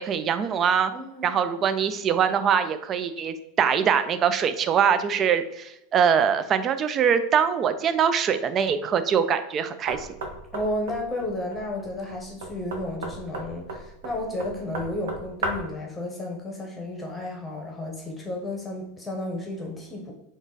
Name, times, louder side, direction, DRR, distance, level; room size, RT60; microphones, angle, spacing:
voice 1, 0.0-0.9 1.2-10.1, right 7 dB, 35° right, 11 dB, 0.4 m, -23 dB
voice 2, 0.9-1.4 10.5-20.1, left 1 dB, 15° left, 0 dB, 0.9 m, -32 dB
Knock, 9.9-15.8, right 2 dB, 80° right, 0.8 m, -35 dB
3.8 x 2.4 x 3.9 m, 0.82 s
supercardioid pair, 120°, 0 cm